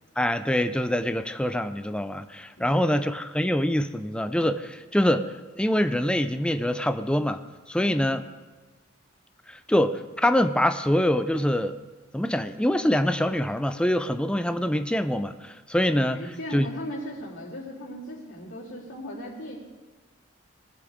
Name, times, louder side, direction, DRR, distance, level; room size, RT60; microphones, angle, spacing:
voice 1, 0.2-7.4 7.7-8.2 9.5-11.8 12.1-16.2 16.5-16.7, left 1 dB, 5° left, 9 dB, 0.4 m, -25 dB
voice 2, 2.6-3.1 7.8-8.1 16.1-19.6, equal, 70° left, -6 dB, 3.8 m, -38 dB
20.0 x 9.9 x 3.6 m, 1.2 s
head